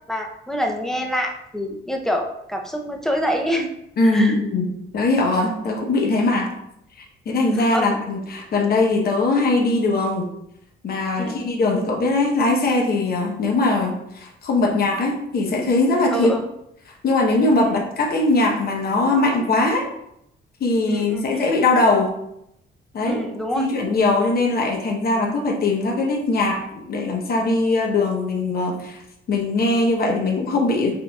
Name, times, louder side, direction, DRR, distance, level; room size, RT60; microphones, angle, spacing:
voice 1, 0.1-3.7 4.0-4.3 7.7-7.9 11.2-11.3 16.1-16.4 17.6-17.8 20.9-21.3 23.0-23.7, equal, ahead, 2 dB, 0.6 m, -26 dB
voice 2, 4.0-6.5 7.3-10.3 10.8-16.4 17.0-19.8 20.6-22.2 22.9-23.2 23.6-29.0 29.3-30.9, left 2 dB, 50° left, -1 dB, 1.0 m, -21 dB
6.2 x 2.6 x 2.4 m, 0.78 s
cardioid pair, 90°, 20 cm